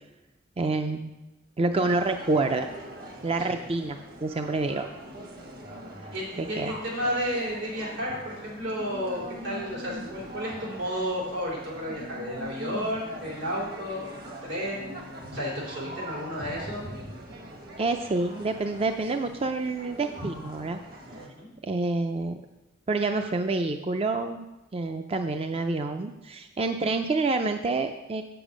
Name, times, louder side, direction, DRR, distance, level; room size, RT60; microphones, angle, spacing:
voice 1, 0.6-1.1 1.6-2.7 3.2-4.9 6.4-6.7 17.8-20.8 21.6-22.4 22.9-24.5 24.7-28.2, right 3 dB, 30° right, 7 dB, 0.4 m, -27 dB
sound 1, 1.7-21.3, right 1 dB, 55° right, 1.5 m, -42 dB
voice 2, 6.1-14.1 14.4-14.9 15.3-16.8 21.2-21.5, equal, 85° right, -4 dB, 4.0 m, -32 dB
8.1 x 6.9 x 6.2 m, 1.0 s
head